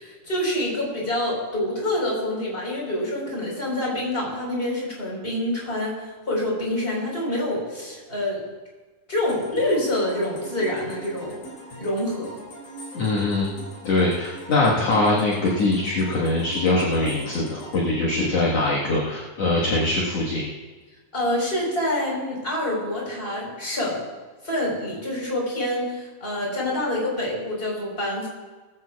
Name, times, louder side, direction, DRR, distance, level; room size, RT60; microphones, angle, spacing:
voice 1, 0.0-8.4 9.1-11.4 11.8-12.3 21.1-24.0 24.4-28.3, left 1 dB, 15° left, -3 dB, 4.4 m, -26 dB
sound 1, 9.3-19.0, right 1 dB, 75° left, 4.6 m, -42 dB
voice 2, 12.9-13.5 13.8-20.5, left 2 dB, 55° left, -4 dB, 2.4 m, -22 dB
20.5 x 15.0 x 2.4 m, 1.3 s
omnidirectional pair, 4.0 m